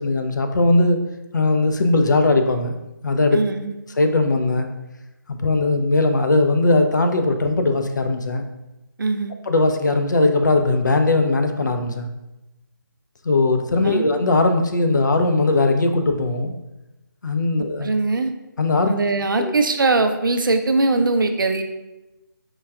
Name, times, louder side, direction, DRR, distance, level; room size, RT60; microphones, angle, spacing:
voice 1, 0.0-1.0 1.3-2.8 3.0-3.4 4.0-4.7 5.3-8.5 9.5-12.1 13.2-16.5 17.2-17.9 18.6-18.9 19.4-19.5, left 2 dB, 60° left, 6 dB, 0.4 m, -19 dB
voice 2, 3.3-3.7 9.0-9.3 13.8-14.1 17.6-18.3 18.9-21.6, right 3 dB, 70° right, 7 dB, 0.4 m, -21 dB
4.5 x 2.2 x 2.3 m, 0.98 s
figure-of-eight pair, 160°, 11 cm